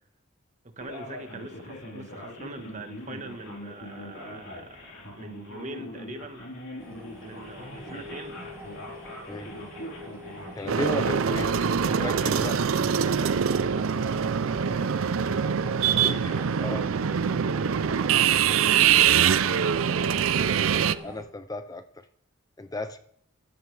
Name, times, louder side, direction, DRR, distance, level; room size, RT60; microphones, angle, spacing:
voice 1, 0.6-4.9 5.1-6.4 7.2-8.4 10.9-11.0 11.8-13.4 14.2-14.4 18.8-19.9, right 2 dB, 35° right, 7 dB, 1.3 m, -42 dB
Male speech man speaking, 0.8-12.8, left 1 dB, 65° left, 4.1 m, -42 dB
sound 1, 6.8-21.2, left 1 dB, 15° right, 2.6 m, -44 dB
voice 2, 10.5-11.5 11.9-12.6 16.0-16.8 21.0-21.8 22.6-23.0, left 2 dB, 15° left, 10 dB, 0.5 m, -34 dB
sound 2, 10.7-20.9, right 8 dB, 75° right, 0.5 m, -23 dB
15.5 x 12.5 x 3.3 m, 0.70 s
head